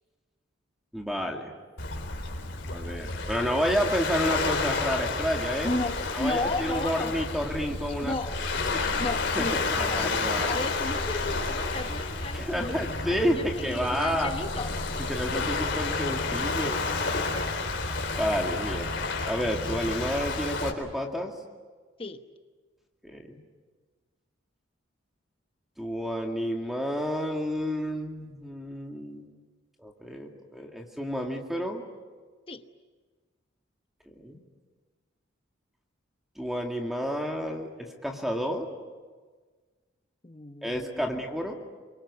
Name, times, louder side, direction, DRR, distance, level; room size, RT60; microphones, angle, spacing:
voice 1, 0.9-1.5 2.6-5.8 6.1-8.2 8.7-9.1 9.4-10.5 12.3-14.3 15.1-16.8 18.2-18.9 19.2-21.3 23.0-23.4 25.8-29.3 29.8-31.8 34.1-34.4 36.4-38.7 40.6-41.5, equal, ahead, 1 dB, 2.2 m, -30 dB
Waves surf, 1.8-20.7, left 3 dB, 60° left, 3.8 m, -30 dB
voice 2, 5.6-7.2 8.0-8.4 9.0-10.1 10.4-14.8 17.3-17.6 22.0-22.2 32.5-32.7 40.2-41.1, left 2 dB, 25° left, 8 dB, 1.1 m, -34 dB
28.5 x 24.0 x 8.4 m, 1.4 s
head